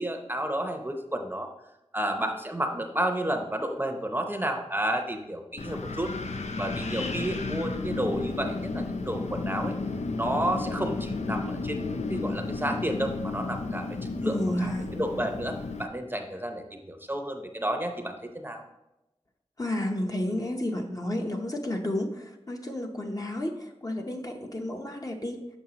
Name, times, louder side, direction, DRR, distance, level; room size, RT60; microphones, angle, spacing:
voice 1, 0.0-1.5 1.9-6.1 6.6-9.7 10.2-14.3 14.6-18.6, right 1 dB, 15° right, 4 dB, 0.7 m, -31 dB
Wind, 5.6-15.9, left 3 dB, 80° left, 0.5 m, -33 dB
voice 2, 14.2-15.0 19.6-25.4, left 1 dB, 30° left, 2 dB, 0.8 m, -31 dB
7.2 x 5.6 x 2.9 m, 0.92 s
wide cardioid pair, 50°, 12 cm